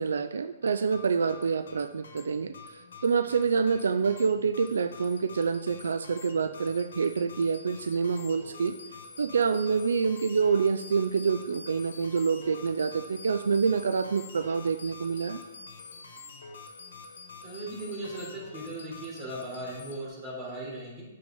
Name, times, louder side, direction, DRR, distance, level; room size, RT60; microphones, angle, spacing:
voice 1, 0.0-2.5 3.0-8.7 9.2-15.4, right 5 dB, 85° right, 11 dB, 0.5 m, -27 dB
sound 1, 0.6-20.1, left 4 dB, 80° left, 1.7 m, -47 dB
voice 2, 17.4-21.0, right 1 dB, 25° right, -3 dB, 3.9 m, -38 dB
10.0 x 7.0 x 5.4 m, 1.1 s
hypercardioid pair, 145°, 0 cm